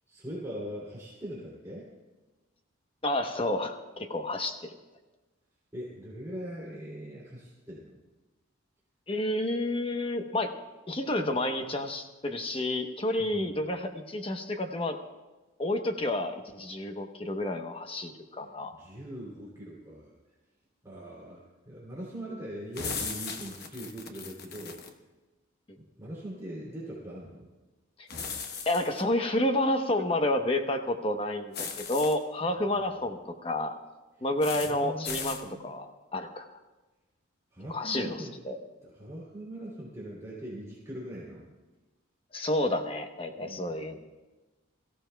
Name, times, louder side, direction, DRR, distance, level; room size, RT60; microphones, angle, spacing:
voice 1, 0.1-1.9 5.7-8.0 13.2-13.5 18.8-20.1 20.8-24.8 26.0-27.5 32.6-32.8 34.6-35.7 37.5-38.3 38.8-41.4 43.4-44.0, right 1 dB, 15° right, -6 dB, 2.8 m, -41 dB
voice 2, 3.0-4.7 9.1-10.5 10.9-15.0 15.6-18.7 28.0-28.1 28.7-33.8 34.2-36.6 37.7-38.6 42.3-44.0, left 1 dB, 25° left, 5 dB, 0.9 m, -30 dB
sound 1, 22.7-24.9 28.1-29.0 31.5-32.2 34.4-34.7 35.0-35.4, left 5 dB, 50° left, 1.0 m, -37 dB
23.0 x 15.0 x 2.3 m, 1.2 s
head